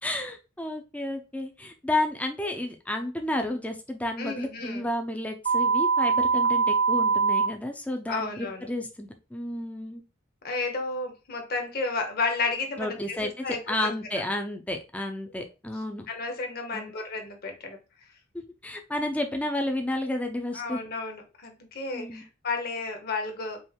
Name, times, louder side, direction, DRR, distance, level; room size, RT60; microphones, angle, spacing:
voice 1, 0.0-10.0 12.8-16.1 16.7-16.9 18.3-20.8 21.9-22.2, left 1 dB, 5° left, 4 dB, 0.6 m, -31 dB
voice 2, 4.2-4.9 8.1-8.7 10.4-13.9 16.1-17.8 20.5-23.6, left 3 dB, 45° left, 4 dB, 1.2 m, -32 dB
sound 1, 5.5-7.5, right 5 dB, 60° right, 1.0 m, -22 dB
5.3 x 2.6 x 3.6 m, 0.30 s
head